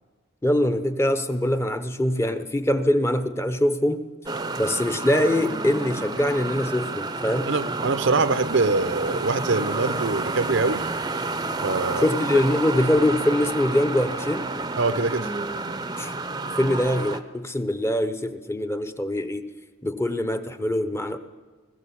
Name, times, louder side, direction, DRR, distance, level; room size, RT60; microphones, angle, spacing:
voice 1, 0.4-4.1 4.6-7.5 12.0-14.5 16.0-16.2 16.6-19.5 19.8-21.2, left 1 dB, 10° left, 10 dB, 0.8 m, -23 dB
sound 1, 4.3-17.2, right 3 dB, 20° right, 0.7 m, -30 dB
voice 2, 7.5-10.8 11.6-12.1 14.8-15.3, right 3 dB, 55° right, 14 dB, 0.7 m, -24 dB
20.0 x 15.0 x 8.6 m, 1.4 s
head